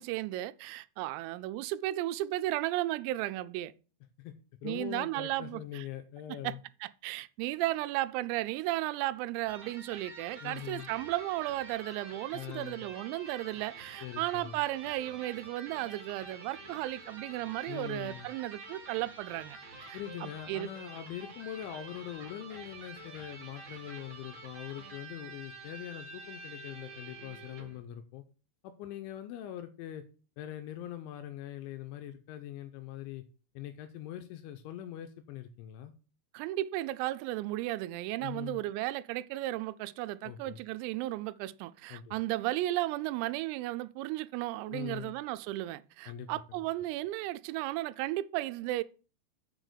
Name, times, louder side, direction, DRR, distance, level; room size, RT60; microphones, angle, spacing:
voice 1, 0.0-3.7 4.6-5.9 6.3-6.5 6.8-19.6 19.9-20.7 36.3-48.8, right 16 dB, 90° right, 3.3 m, -34 dB
voice 2, 4.6-6.6 10.4-10.9 12.3-12.9 14.0-14.6 17.7-18.3 19.9-28.2 28.6-30.0 30.4-33.2 33.6-35.9 38.2-38.6 40.2-40.6 41.9-42.2 44.7-45.1 46.1-46.3, left 11 dB, 85° left, 2.8 m, -42 dB
Electric guitar, 9.4-27.8, right 3 dB, 60° right, 1.3 m, -48 dB
7.1 x 6.2 x 6.6 m
omnidirectional pair, 5.9 m